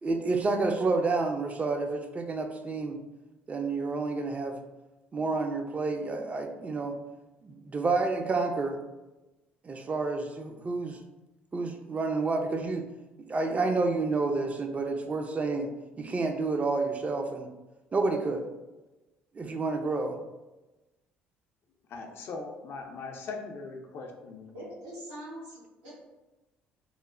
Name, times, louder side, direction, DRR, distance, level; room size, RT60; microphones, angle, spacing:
voice 1, 0.0-3.0 3.5-4.6 5.1-7.0 7.4-8.8 9.6-11.0 11.5-12.8 13.3-15.7 16.0-17.5 17.9-18.4 19.3-20.2, right 3 dB, 30° right, 4 dB, 0.4 m, -29 dB
voice 2, 21.9-24.7, left 4 dB, 60° left, 3 dB, 0.5 m, -40 dB
voice 3, 24.5-25.9, equal, 90° right, -11 dB, 0.9 m, -43 dB
3.0 x 2.0 x 2.4 m, 1.1 s
supercardioid pair, 70°, 5 cm